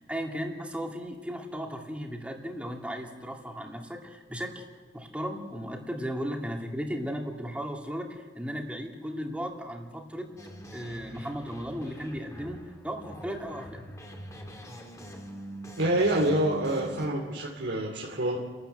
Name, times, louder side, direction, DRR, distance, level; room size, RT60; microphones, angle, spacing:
voice 1, 0.0-4.6 4.9-10.3 10.7-13.9, equal, 5° right, 1 dB, 2.5 m, -36 dB
sound 1, 10.4-17.1, right 1 dB, 20° left, 2.3 m, -44 dB
voice 2, 15.8-18.4, right 1 dB, 85° right, -3 dB, 2.9 m, -27 dB
30.0 x 13.0 x 8.1 m, 1.4 s
head